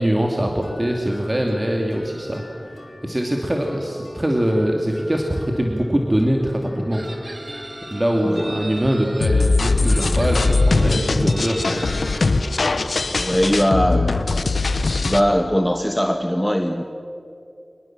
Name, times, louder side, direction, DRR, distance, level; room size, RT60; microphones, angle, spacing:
voice 1, 0.0-7.1 7.9-11.8, right 1 dB, 30° right, 1 dB, 2.5 m, -22 dB
sound 1, 0.6-16.2, left 1 dB, 50° left, 3.5 m, -41 dB
Chicken rooster, 6.9-9.3 9.8-12.3, right 2 dB, 50° right, 2.8 m, -38 dB
sound 2, 9.2-15.2, left 3 dB, 90° left, 1.0 m, -20 dB
voice 2, 13.2-14.4 15.0-16.8, equal, 5° left, 5 dB, 1.4 m, -20 dB
24.5 x 20.5 x 7.4 m, 2.6 s
wide cardioid pair, 40°, 0 cm